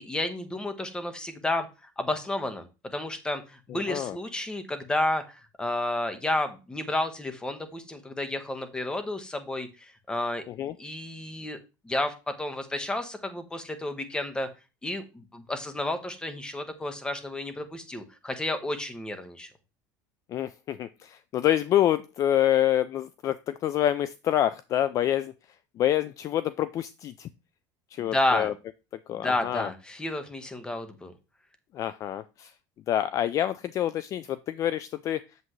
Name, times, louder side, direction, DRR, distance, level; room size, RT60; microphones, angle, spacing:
voice 1, 0.0-1.7 2.0-2.7 2.9-10.5 10.8-11.6 11.8-14.5 14.8-19.5 28.0-28.5 29.1-31.1, left 2 dB, 10° left, 8 dB, 1.3 m, -31 dB
voice 2, 3.7-4.2 10.5-10.7 20.3-25.3 25.8-27.3 27.9-28.5 29.1-29.7 31.7-32.5 32.9-35.2, left 11 dB, 40° left, 15 dB, 0.4 m, -27 dB
8.1 x 7.3 x 3.1 m, 0.29 s
cardioid pair, 135°, 9 cm